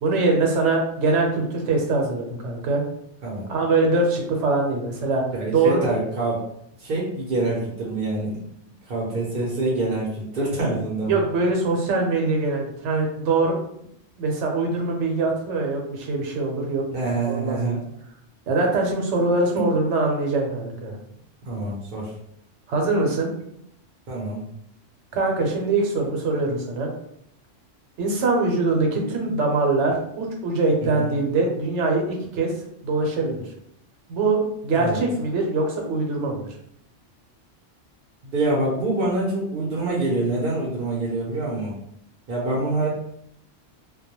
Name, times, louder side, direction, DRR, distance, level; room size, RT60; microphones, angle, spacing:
voice 1, 0.0-2.8 3.5-5.8 11.1-13.6 14.2-16.8 17.3-17.7 18.5-21.0 22.7-23.3 25.1-26.9 28.0-32.5 32.8-33.4 34.1-36.5, right 3 dB, 70° right, 1 dB, 0.9 m, -23 dB
voice 2, 5.3-6.4 6.8-8.4 8.8-11.1 16.9-17.8 21.4-22.1 24.1-24.4 31.0-31.1 34.8-35.0 38.2-41.7 42.3-42.9, right 2 dB, 55° right, -5 dB, 0.7 m, -25 dB
2.2 x 2.1 x 2.9 m, 0.72 s
omnidirectional pair, 1.3 m